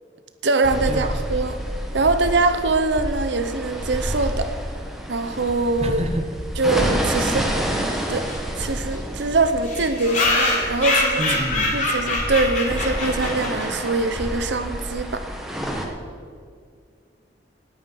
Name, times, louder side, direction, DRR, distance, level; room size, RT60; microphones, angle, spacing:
voice 1, 0.4-1.6 1.9-4.5 5.1-6.0 6.6-7.8 8.1-8.3 8.6-11.2 11.7-15.2, right 3 dB, 80° right, 9 dB, 0.8 m, -23 dB
sound 1, 0.6-15.9, equal, ahead, 1.6 m, -29 dB
voice 2, 5.8-6.3 11.2-11.8, right 1 dB, 35° right, 5 dB, 1.2 m, -27 dB
sound 2, 7.9-8.0 8.3-8.4 8.6-8.7 8.9-9.0 9.6-13.8, left 2 dB, 45° left, 3.7 m, -24 dB
19.0 x 8.6 x 5.4 m, 2.2 s
head